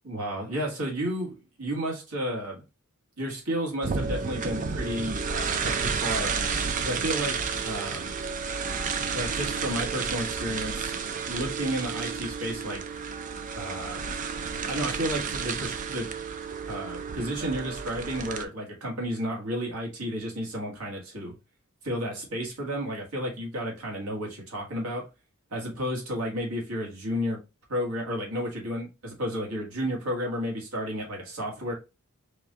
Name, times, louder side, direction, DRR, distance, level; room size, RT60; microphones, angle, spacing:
voice 1, 0.0-2.6 3.2-6.4 6.8-8.1 9.1-11.0 11.3-12.8 13.5-14.0 14.7-16.1 16.7-21.3 21.8-25.1 25.5-27.4 27.7-31.7, equal, 85° right, 1.8 m, -32 dB
sound 1, 3.8-18.4, right 5 dB, 35° right, 0.4 m, -31 dB
4.8 x 2.6 x 3.6 m
head